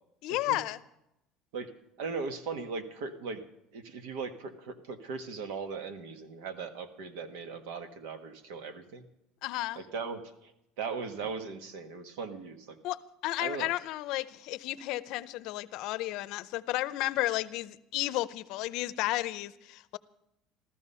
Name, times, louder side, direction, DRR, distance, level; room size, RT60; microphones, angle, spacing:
voice 1, 0.2-0.8 9.4-9.8 12.8-20.0, left 17 dB, 60° left, 0.6 m, -33 dB
voice 2, 2.0-3.4 3.7-9.1 9.8-10.5 10.8-12.8 13.4-13.7, right 4 dB, 90° right, 1.6 m, -38 dB
15.0 x 14.0 x 5.6 m
cardioid pair, 160°, 0 cm